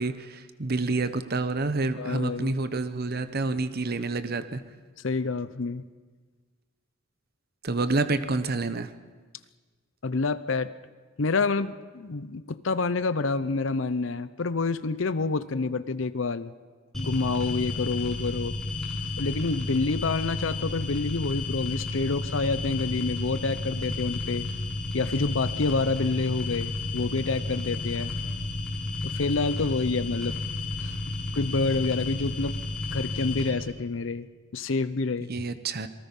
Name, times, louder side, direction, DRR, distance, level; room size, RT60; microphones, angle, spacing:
voice 1, 0.0-4.6 7.6-8.9 35.3-35.9, right 3 dB, 50° right, 11 dB, 0.9 m, -28 dB
voice 2, 2.0-2.5 5.0-5.8 10.0-10.7 11.2-16.5 16.9-18.6 19.2-24.5 24.9-28.1 29.0-30.4 30.8-31.0 31.3-32.6 32.9-34.3 34.5-35.3, left 3 dB, 70° left, 14 dB, 0.7 m, -28 dB
sound 1, 16.9-33.5, left 3 dB, ahead, 5.5 m, -32 dB
27.0 x 19.0 x 5.5 m, 1.4 s
head